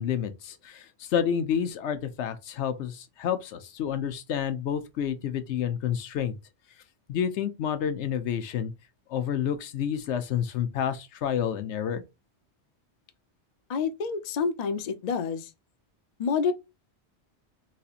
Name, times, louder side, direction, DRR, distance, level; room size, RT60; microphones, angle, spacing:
voice 1, 0.0-6.4 7.1-8.7 9.1-12.0, left 8 dB, 85° left, 1.0 m, -29 dB
voice 2, 13.7-15.5 16.2-16.5, left 5 dB, 50° left, 0.5 m, -28 dB
4.1 x 2.8 x 2.4 m
omnidirectional pair, 1.1 m